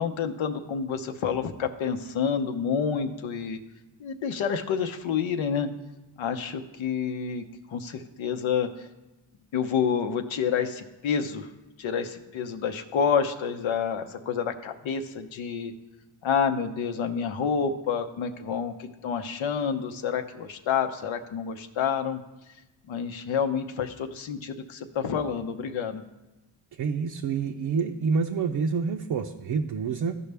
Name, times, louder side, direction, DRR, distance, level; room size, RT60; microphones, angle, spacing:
voice 1, 0.0-3.6 4.0-5.7 6.2-8.9 9.5-11.5 11.8-15.7 16.2-22.2 22.9-26.0, left 7 dB, 85° left, 7 dB, 0.8 m, -28 dB
voice 2, 26.8-30.2, right 5 dB, 55° right, 3 dB, 0.6 m, -27 dB
14.5 x 5.3 x 3.4 m, 1.0 s
cardioid pair, 75°, 46 cm